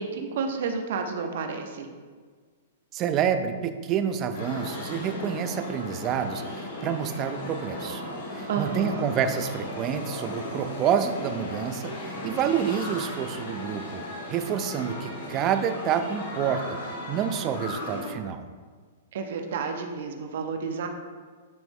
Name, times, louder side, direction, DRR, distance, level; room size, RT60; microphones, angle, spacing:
voice 1, 0.0-1.9 8.5-9.1 19.1-20.9, right 5 dB, 60° right, 4 dB, 0.7 m, -31 dB
voice 2, 2.9-8.0 8.3-14.0 14.3-16.8 17.1-18.5, right 8 dB, 25° right, 9 dB, 0.4 m, -28 dB
sound 1, 4.3-18.1, left 1 dB, 65° left, 1.7 m, -36 dB
9.0 x 3.1 x 3.6 m, 1.5 s
hypercardioid pair, 155°, 0 cm